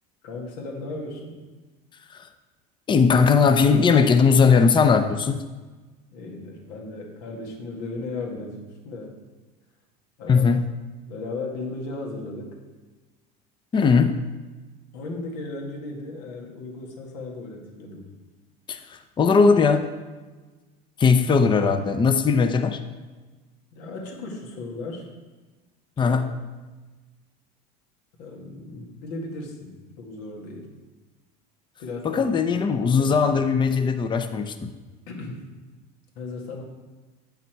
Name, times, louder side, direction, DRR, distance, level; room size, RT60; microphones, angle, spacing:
voice 1, 0.2-1.4 6.1-9.2 10.2-10.5 11.0-12.6 14.9-18.1 23.7-25.1 26.0-26.2 28.2-30.7 31.8-32.3 33.0-33.2 35.1-35.4 36.2-36.6, left 2 dB, 80° left, 0 dB, 2.0 m, -36 dB
voice 2, 2.9-5.4 10.3-10.6 13.7-14.1 18.7-18.8 19.2-19.9 21.0-22.8 26.0-26.2 32.0-34.7, left 5 dB, 20° left, 7 dB, 0.6 m, -19 dB
8.7 x 5.7 x 4.6 m, 1.3 s
supercardioid pair, 110°, 21 cm